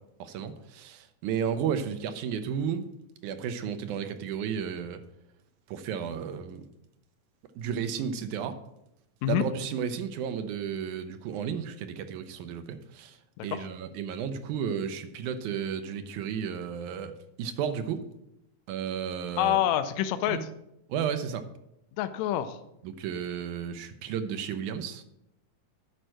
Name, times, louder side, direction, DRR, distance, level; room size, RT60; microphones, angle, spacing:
voice 1, 0.2-2.9 3.2-5.0 5.7-6.6 7.6-8.6 9.3-13.2 13.4-17.1 17.4-18.0 18.7-19.7 20.3-20.5 20.9-21.5 22.8-25.0, right 7 dB, 80° right, 9 dB, 2.1 m, -33 dB
voice 2, 19.4-20.4 22.0-22.6, left 11 dB, 75° left, 10 dB, 1.8 m, -27 dB
11.0 x 4.5 x 6.3 m, 0.83 s
omnidirectional pair, 3.5 m